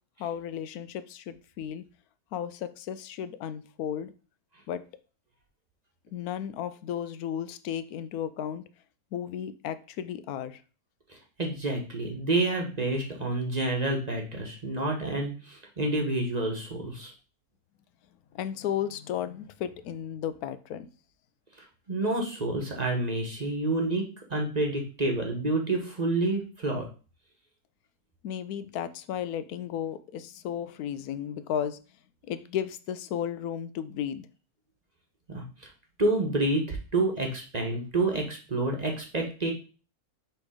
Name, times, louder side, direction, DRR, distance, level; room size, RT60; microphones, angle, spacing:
voice 1, 0.2-1.8 2.3-4.1 4.7-4.8 6.1-8.6 9.1-10.6 18.3-20.9 28.2-31.8 32.3-34.3, left 9 dB, 85° left, 13 dB, 1.1 m, -34 dB
voice 2, 11.1-17.1 21.9-24.0 24.3-26.8 35.3-35.4 36.0-39.5, right 2 dB, 30° right, 1 dB, 1.1 m, -28 dB
6.1 x 3.2 x 4.9 m, 0.35 s
omnidirectional pair, 1.5 m